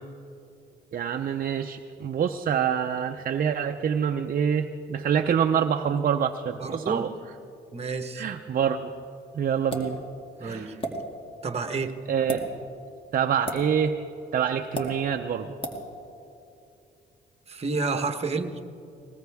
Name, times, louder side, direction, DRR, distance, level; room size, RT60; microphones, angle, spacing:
voice 1, 0.9-7.1 8.1-8.9 9.3-10.0 10.4-10.8 12.1-12.4 13.1-14.0 14.3-15.6, right 8 dB, 45° right, 6 dB, 0.6 m, -26 dB
voice 2, 6.6-7.0 7.7-8.2 10.4-10.7 11.4-12.0 17.5-18.6, right 4 dB, 30° right, 7 dB, 1.2 m, -29 dB
sound 1, 9.7-9.9 10.8-10.9 12.2-12.4 13.5-13.6 14.7-14.9 15.6-15.8, equal, 25° left, 2.3 m, -31 dB
20.0 x 20.0 x 3.5 m, 2.7 s
cardioid pair, 90°, 20 cm